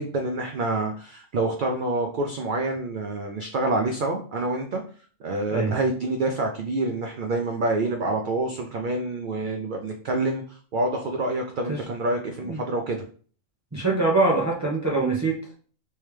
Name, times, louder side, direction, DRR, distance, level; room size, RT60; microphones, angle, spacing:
voice 1, 0.0-4.8 5.2-13.0, right 2 dB, 70° right, 3 dB, 0.4 m, -27 dB
voice 2, 13.7-15.5, right 3 dB, 15° right, -3 dB, 0.7 m, -23 dB
3.4 x 3.1 x 3.1 m, 0.44 s
omnidirectional pair, 1.4 m